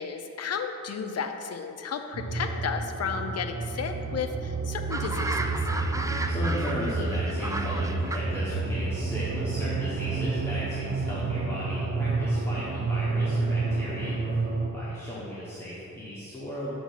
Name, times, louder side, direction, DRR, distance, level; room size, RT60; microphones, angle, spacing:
voice 1, 0.0-5.4, left 6 dB, 55° left, 6 dB, 0.5 m, -33 dB
sound 1, 2.1-14.7, right 3 dB, 35° right, 0.7 m, -29 dB
sound 2, 4.9-8.2, right 2 dB, 10° right, 0.3 m, -34 dB
voice 2, 6.3-16.8, equal, 10° left, -10 dB, 1.2 m, -36 dB
7.2 x 3.5 x 5.8 m, 2.7 s
wide cardioid pair, 115°, 30 cm